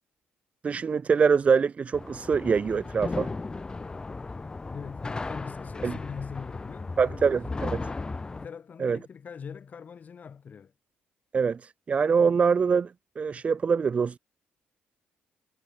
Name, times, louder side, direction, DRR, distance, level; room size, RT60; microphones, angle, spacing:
voice 1, 0.6-3.3 5.8-6.0 7.0-7.9 8.8-9.0 11.3-14.2, right 5 dB, 35° right, 0.5 m, -24 dB
sound 1, 1.9-8.5, left 3 dB, 20° left, 4.2 m, -36 dB
voice 2, 4.7-8.0 8.3-10.7, left 6 dB, 40° left, 2.6 m, -42 dB
cardioid pair, 110°, 4 cm